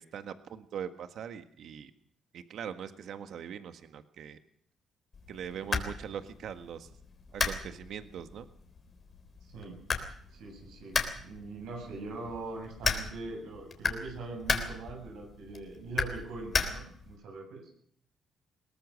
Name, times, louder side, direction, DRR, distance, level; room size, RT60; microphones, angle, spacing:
voice 1, 0.0-1.9 2.3-4.4 5.3-6.9 7.3-8.4, right 8 dB, 70° right, 9 dB, 1.6 m, -41 dB
sound 1, 5.1-17.2, left 4 dB, 40° left, 3.6 m, -36 dB
voice 2, 9.4-9.8 10.3-17.7, right 3 dB, 85° right, 2 dB, 7.3 m, -42 dB
22.0 x 18.5 x 6.5 m, 0.62 s
cardioid pair, 90°, 0 cm